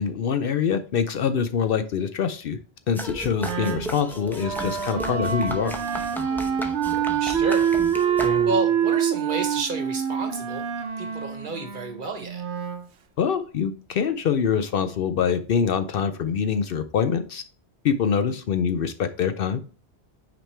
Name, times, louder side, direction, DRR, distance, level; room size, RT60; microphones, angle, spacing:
voice 1, 0.0-2.6 2.9-5.8 13.2-17.4 17.8-19.6, left 7 dB, 65° left, 10 dB, 0.7 m, -24 dB
sound 1, 3.0-8.8, left 1 dB, ahead, 0.7 m, -35 dB
Wind instrument woodwind instrument, 3.4-12.9, right 8 dB, 75° right, 1.1 m, -26 dB
voice 2, 7.2-7.7 8.4-10.7 11.0-12.4, right 3 dB, 50° right, 5 dB, 1.2 m, -30 dB
5.9 x 5.2 x 3.3 m, 0.37 s
omnidirectional pair, 1.1 m